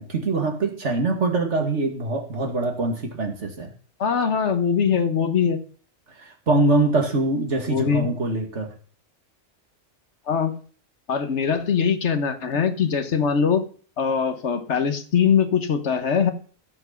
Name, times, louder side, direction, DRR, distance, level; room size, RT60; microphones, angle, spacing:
voice 1, 0.0-3.7 6.2-8.7, right 2 dB, 75° right, 3 dB, 2.5 m, -23 dB
voice 2, 4.0-5.6 7.7-8.1 10.3-10.5 11.1-13.6 14.0-16.3, left 6 dB, 70° left, 8 dB, 1.5 m, -22 dB
16.0 x 6.2 x 5.8 m, 0.42 s
omnidirectional pair, 1.2 m